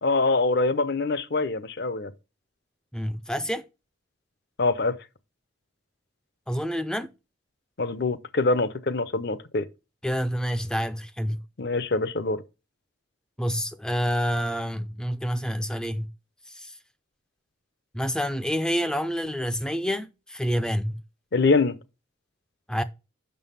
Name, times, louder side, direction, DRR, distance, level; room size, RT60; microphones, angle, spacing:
voice 1, 0.0-2.1 4.6-5.0 7.8-9.7 11.6-12.4 21.3-21.8, left 3 dB, 55° left, 0.7 m, -24 dB
voice 2, 2.9-3.7 6.5-7.1 10.0-11.4 13.4-16.1 16.5-16.8 17.9-21.0 22.7-22.8, equal, 5° left, 0.4 m, -28 dB
6.4 x 5.5 x 5.5 m
head